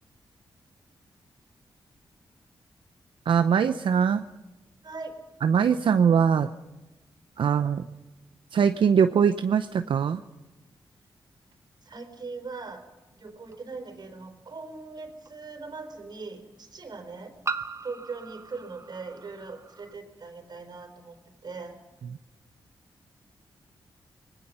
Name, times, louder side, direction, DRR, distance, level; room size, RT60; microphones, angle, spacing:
voice 1, 3.3-4.2 5.4-6.5 7.4-7.8 8.5-10.2, right 7 dB, 75° right, 9 dB, 0.7 m, -22 dB
voice 2, 4.8-5.2 11.8-12.8 13.2-17.4 17.8-21.8, right 4 dB, 55° right, 6 dB, 4.2 m, -40 dB
sound 1, 13.5-13.6 15.2-15.3 17.4-19.9, right 4 dB, 35° right, 1.2 m, -37 dB
26.5 x 21.0 x 5.6 m, 1.1 s
cardioid pair, 75°, 9 cm